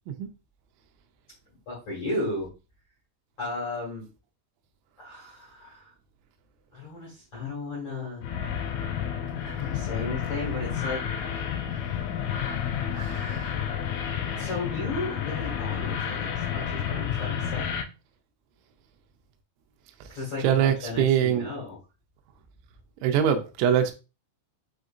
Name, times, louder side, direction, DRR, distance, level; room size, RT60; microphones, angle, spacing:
voice 1, 1.6-2.5 3.4-4.1 5.0-5.9 6.7-8.2 9.4-11.0 11.3-11.4 12.9-13.6 14.4-17.8 20.1-21.8, left 2 dB, 60° left, 1.5 m, -35 dB
sound 1, 8.2-17.8, left 8 dB, 80° left, 2.8 m, -30 dB
voice 2, 20.4-21.5 23.0-23.9, right 9 dB, 80° right, 2.9 m, -22 dB
7.7 x 2.7 x 2.4 m
omnidirectional pair, 5.8 m